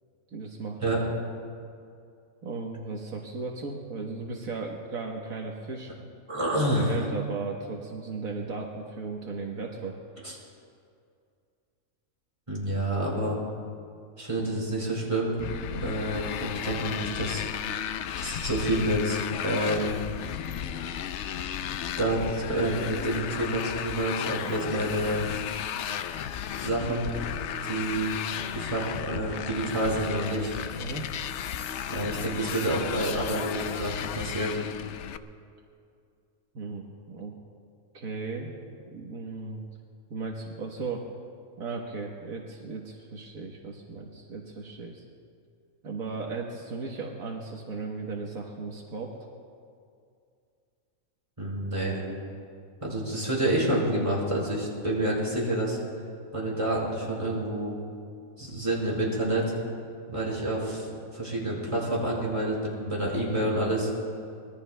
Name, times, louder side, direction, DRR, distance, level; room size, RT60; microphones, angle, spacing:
voice 1, 0.3-0.9 2.4-5.9 6.7-9.9 15.7-15.9 30.8-31.1 36.5-37.3 37.9-38.5 38.9-39.6 40.1-41.1 41.6-45.0 45.8-49.2, right 4 dB, 75° right, -1 dB, 1.6 m, -36 dB
voice 2, 6.3-7.0 10.2-10.4 12.5-13.4 14.2-15.3 15.8-17.4 18.2-20.0 22.0-25.3 26.6-27.1 27.6-28.2 28.5-30.5 31.9-34.6 51.4-52.0 52.8-55.8 56.3-57.8 58.4-59.4 60.1-63.9, right 1 dB, 20° right, -5 dB, 4.7 m, -28 dB
Motorcycle, 15.4-35.2, left 9 dB, 65° left, 0.8 m, -34 dB
25.0 x 20.5 x 2.2 m, 2.4 s
omnidirectional pair, 1.5 m